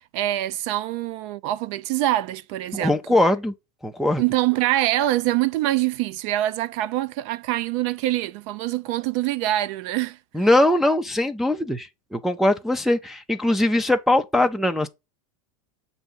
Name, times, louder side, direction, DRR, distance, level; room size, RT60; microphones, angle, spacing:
voice 1, 0.1-3.0 4.2-10.2, right 14 dB, 60° right, 0.6 m, -24 dB
voice 2, 2.7-3.5 3.8-4.2 10.3-14.9, left 1 dB, ahead, 0.5 m, -21 dB
6.8 x 2.7 x 5.5 m
supercardioid pair, 120°, 17 cm